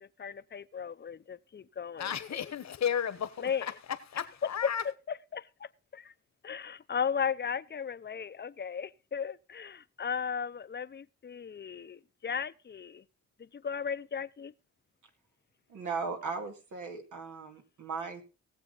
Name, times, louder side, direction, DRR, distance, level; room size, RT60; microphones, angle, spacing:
voice 1, 0.0-2.4 3.4-3.7 5.1-6.1 6.4-13.0 13.5-14.5, left 7 dB, 35° left, 0.6 m, -36 dB
voice 2, 2.0-4.8, left 8 dB, 65° left, 1.2 m, -34 dB
voice 3, 15.7-18.2, right 4 dB, 85° right, 2.3 m, -37 dB
18.5 x 7.5 x 4.0 m
cardioid pair, 70°, 30 cm